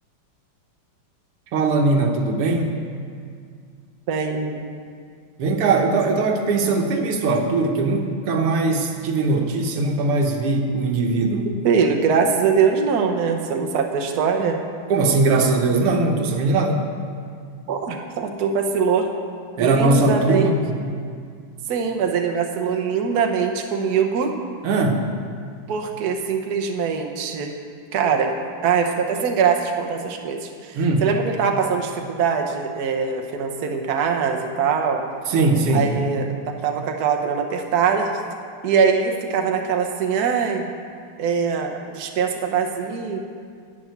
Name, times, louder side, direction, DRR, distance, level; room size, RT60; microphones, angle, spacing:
voice 1, 1.5-2.8 5.4-11.5 14.9-16.9 19.6-20.7 24.6-25.0 30.7-31.1 35.3-35.9, right 3 dB, 90° right, 3 dB, 2.1 m, -20 dB
voice 2, 4.1-4.7 11.6-14.6 17.7-19.1 19.6-20.5 21.7-24.3 25.7-27.5 27.9-28.3 28.6-35.0 35.7-36.3 36.6-38.1 38.6-40.7 41.2-43.2, right 6 dB, 55° right, 3 dB, 1.3 m, -22 dB
11.0 x 7.3 x 9.4 m, 2.2 s
omnidirectional pair, 2.4 m